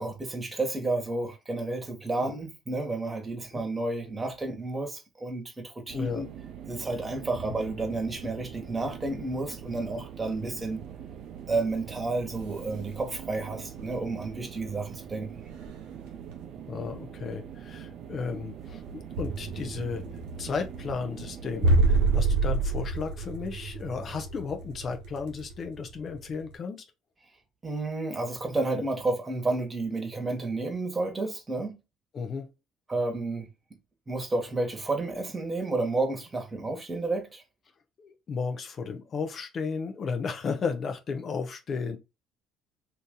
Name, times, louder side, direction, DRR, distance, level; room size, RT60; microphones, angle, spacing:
voice 1, 0.0-6.3 6.7-10.8 11.5-15.4 27.6-31.8 32.9-33.5 34.1-37.4, right 2 dB, 25° right, 1.3 m, -31 dB
voice 2, 5.9-6.3 16.7-20.0 20.4-26.9 32.1-32.5 38.0-42.0, left 5 dB, 50° left, 0.6 m, -34 dB
sound 1, 5.9-22.2, right 9 dB, 60° right, 0.5 m, -43 dB
sound 2, 7.3-14.9 15.2-26.6, right 3 dB, 80° right, 0.9 m, -31 dB
2.9 x 2.6 x 3.6 m
hypercardioid pair, 65°, 0 cm